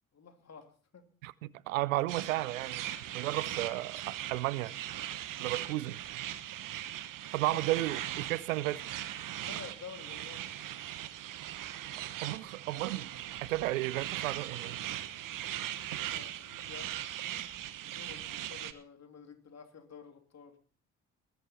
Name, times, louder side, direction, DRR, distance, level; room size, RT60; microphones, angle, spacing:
voice 1, 0.1-1.0 9.4-10.5 15.9-17.0 17.8-20.6, left 6 dB, 40° left, 2.9 m, -50 dB
voice 2, 1.2-2.8 3.1-4.8 5.4-6.0 7.3-8.8 12.2-13.1 13.4-14.8, right 17 dB, 80° right, 0.6 m, -33 dB
sound 1, 2.1-18.7, right 12 dB, 50° right, 1.1 m, -40 dB
20.0 x 10.5 x 4.3 m
figure-of-eight pair, 45°, 40 cm